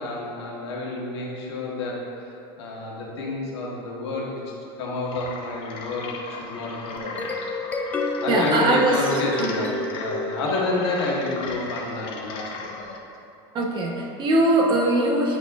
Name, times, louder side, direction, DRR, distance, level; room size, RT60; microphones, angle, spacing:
voice 1, 0.0-4.5 4.8-6.1 6.4-7.3 8.2-12.7, left 2 dB, 90° left, -3 dB, 1.4 m, -29 dB
sound 1, 5.1-13.0, left 3 dB, 40° left, 0.8 m, -37 dB
sound 2, 7.0-11.3, left 2 dB, 10° left, 0.3 m, -30 dB
voice 2, 8.3-9.6 13.5-15.4, right 2 dB, 35° right, 0 dB, 0.8 m, -21 dB
10.0 x 4.1 x 2.4 m, 2.6 s
supercardioid pair, 135°, 13 cm